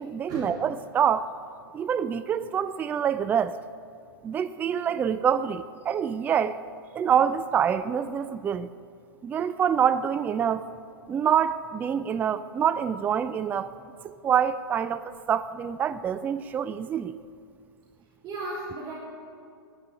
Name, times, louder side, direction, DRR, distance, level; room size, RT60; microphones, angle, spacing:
voice 1, 0.0-1.3 1.7-3.6 4.2-6.6 6.9-8.7 9.2-10.6 11.1-13.7 14.0-17.2, right 8 dB, 15° right, 0.3 m, -26 dB
voice 2, 18.2-18.9, right 2 dB, 30° right, 3.2 m, -35 dB
10.0 x 10.0 x 8.8 m
figure-of-eight pair, 110°, 13 cm